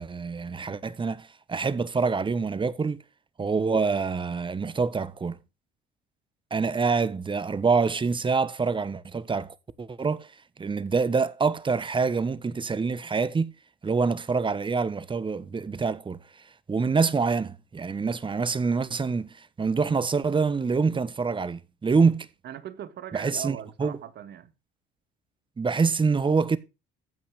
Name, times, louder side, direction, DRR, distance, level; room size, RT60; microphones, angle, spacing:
voice 1, 0.0-3.0 3.4-5.4 6.5-10.3 10.6-13.5 13.8-16.2 16.7-22.3 23.1-24.0 25.6-26.6, right 4 dB, 25° right, 1.2 m, -26 dB
voice 2, 22.4-24.5, right 10 dB, 55° right, 1.9 m, -39 dB
14.5 x 5.8 x 6.4 m
supercardioid pair, 85°, 20 cm